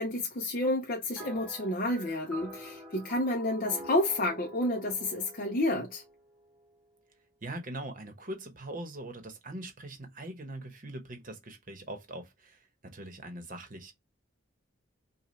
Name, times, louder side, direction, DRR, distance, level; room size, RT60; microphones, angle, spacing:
voice 1, 0.0-6.0, left 1 dB, 45° left, 0.7 m, -30 dB
sound 1, 1.2-6.7, right 1 dB, ahead, 1.0 m, -47 dB
voice 2, 7.4-13.9, right 1 dB, 40° right, 1.0 m, -42 dB
5.2 x 2.3 x 3.2 m
head